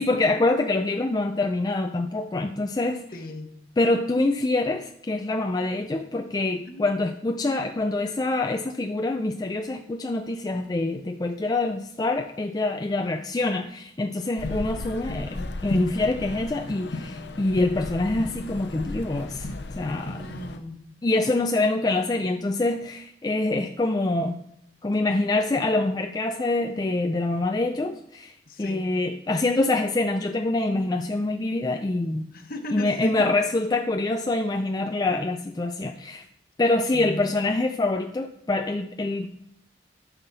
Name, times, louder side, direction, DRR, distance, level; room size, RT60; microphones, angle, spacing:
voice 1, 0.0-3.0 3.8-19.5 19.8-20.2 21.0-24.4 24.8-32.3 32.7-36.2 36.6-39.3, left 2 dB, 20° left, 5 dB, 0.4 m, -25 dB
voice 2, 3.1-3.5 6.7-7.0 13.0-13.2 20.0-20.8 28.5-28.9 32.3-33.2 36.9-37.3, left 1 dB, 50° left, 5 dB, 1.1 m, -37 dB
sound 1, 14.4-20.6, left 2 dB, 70° left, 0.7 m, -35 dB
13.0 x 5.8 x 4.1 m, 0.74 s
head